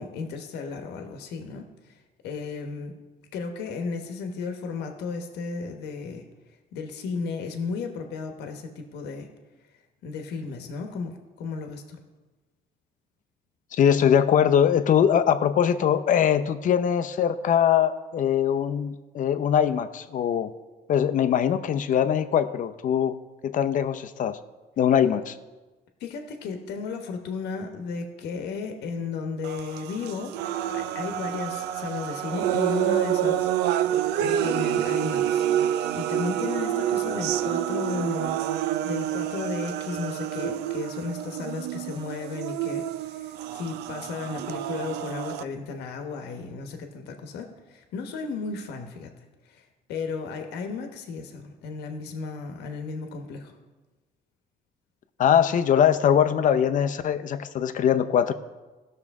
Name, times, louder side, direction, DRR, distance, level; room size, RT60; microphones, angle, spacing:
voice 1, 0.0-2.9 3.3-6.2 6.7-9.3 10.0-12.0 26.0-35.4 35.9-38.4 38.8-49.1 49.4-53.6, left 4 dB, 80° left, 5 dB, 1.1 m, -34 dB
voice 2, 13.7-20.5 20.9-23.2 23.4-24.4 24.8-25.3 55.2-58.3, left 9 dB, 50° left, 10 dB, 0.6 m, -22 dB
sound 1, 29.4-45.4, right 11 dB, 80° right, 0.5 m, -28 dB
16.5 x 6.4 x 3.6 m, 1.2 s
cardioid pair, 110°, 17 cm